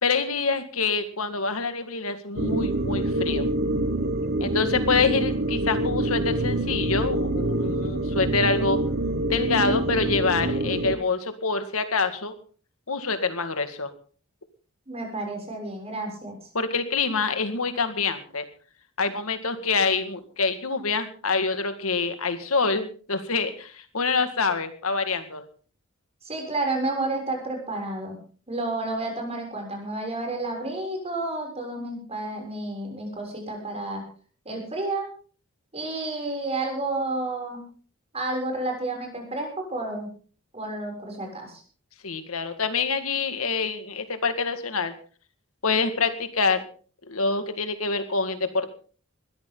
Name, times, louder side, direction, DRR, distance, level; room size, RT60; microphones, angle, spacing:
voice 1, 0.0-3.5 4.4-8.8 9.3-12.3 12.9-13.9 16.5-18.4 19.0-25.4 42.0-44.9 45.6-46.6 47.1-48.7, left 4 dB, 80° left, 9 dB, 2.0 m, -26 dB
sound 1, 2.4-11.0, right 1 dB, 50° right, 1.3 m, -26 dB
voice 2, 14.9-16.4 26.2-28.2 28.5-34.0 34.5-35.1 35.7-37.6 38.1-40.1 40.5-41.6, right 2 dB, 30° right, 2 dB, 7.0 m, -30 dB
21.0 x 14.0 x 3.9 m, 0.42 s
head